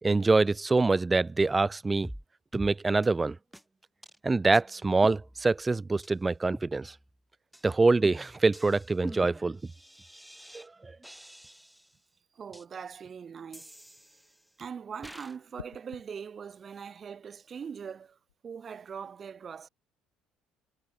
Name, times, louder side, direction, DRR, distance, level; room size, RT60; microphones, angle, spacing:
voice 1, 0.0-2.1 2.5-3.4 4.2-6.9 7.6-9.6 10.5-10.9, right 3 dB, 20° right, 1.4 m, -25 dB
sound 1, 2.0-2.3 2.5-2.7 3.0-3.1 3.5-3.6 4.0-4.2 4.5-4.6 5.0-5.7 6.0-6.1 6.5-7.2 7.5-7.7 8.0-10.7 11.0-11.9 12.5-12.6 13.5-14.5 15.0-15.4, equal, 5° right, 2.9 m, -45 dB
voice 2, 12.3-13.7 14.6-19.7, right 7 dB, 40° right, 4.0 m, -41 dB
sound 2, 12.7-13.1 15.6-16.1 18.1-18.4, left 9 dB, 85° left, 2.6 m, -48 dB
hypercardioid pair, 60°, 0 cm